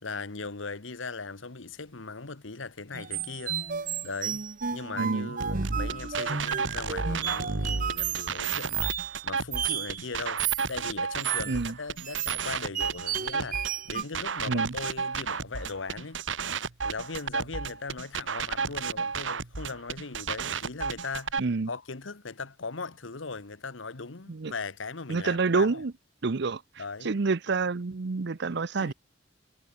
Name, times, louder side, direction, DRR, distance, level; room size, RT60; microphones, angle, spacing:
voice 1, 0.0-3.6 4.0-16.2 16.8-21.4 21.7-25.8 26.8-27.2 28.8-28.9, left 4 dB, 90° left, 1.4 m, -39 dB
sound 1, 2.9-10.0 10.4-10.7 11.2-14.0, right 8 dB, 45° right, 1.1 m, -33 dB
voice 2, 5.0-5.3 11.5-11.7 14.5-14.7 21.4-21.7 24.3-24.5 25.1-25.9 26.2-26.6 27.0-28.9, right 4 dB, 60° right, 0.7 m, -28 dB
sound 2, 5.4-21.4, right 5 dB, 80° right, 1.4 m, -32 dB
head